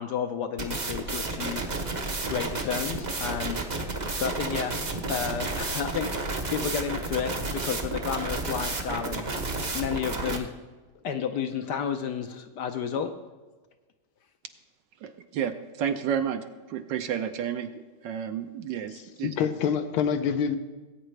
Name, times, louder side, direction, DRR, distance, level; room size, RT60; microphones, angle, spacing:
voice 1, 0.0-1.6 2.3-9.3 9.7-10.5 11.0-13.1, left 7 dB, 70° left, 7 dB, 1.1 m, -32 dB
sound 1, 0.6-10.4, right 3 dB, 40° right, 0.6 m, -31 dB
voice 2, 15.0-16.4 16.7-17.7 18.0-19.3, right 8 dB, 70° right, 9 dB, 1.2 m, -31 dB
voice 3, 18.9-20.6, left 7 dB, 85° left, 9 dB, 1.6 m, -26 dB
18.5 x 9.0 x 3.2 m, 1.3 s
omnidirectional pair, 2.3 m